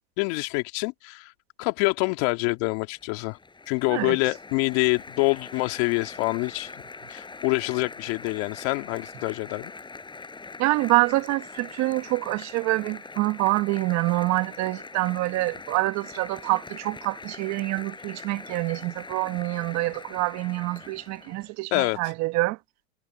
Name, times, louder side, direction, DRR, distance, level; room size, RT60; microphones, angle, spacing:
voice 1, 0.2-1.3 1.6-3.4 3.7-6.8 7.1-9.7 21.7-22.0, left 27 dB, 55° left, 2.5 m, -26 dB
Applause, 2.6-21.5, left 4 dB, 10° left, 6.6 m, -43 dB
voice 2, 10.6-22.6, right 21 dB, 45° right, 1.4 m, -26 dB
supercardioid pair, 125°, 39 cm